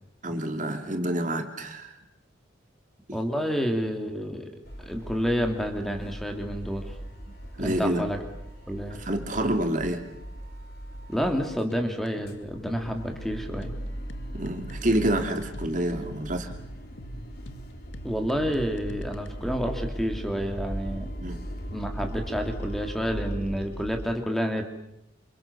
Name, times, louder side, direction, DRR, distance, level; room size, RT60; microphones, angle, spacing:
voice 1, 0.2-1.9 3.1-3.2 7.6-8.0 9.0-10.0 14.3-16.5 21.2-21.4, right 1 dB, 40° right, 5 dB, 2.9 m, -28 dB
voice 2, 3.1-4.5 4.9-7.0 7.6-8.2 8.7-9.0 11.1-13.7 18.0-21.1 21.7-24.6, equal, ahead, 4 dB, 2.7 m, -29 dB
sound 1, 4.6-11.7 12.1-24.1, equal, 50° left, 3.9 m, -38 dB
sound 2, 11.7-19.3, right 1 dB, 70° left, 1.8 m, -47 dB
28.0 x 28.0 x 6.9 m, 0.80 s
head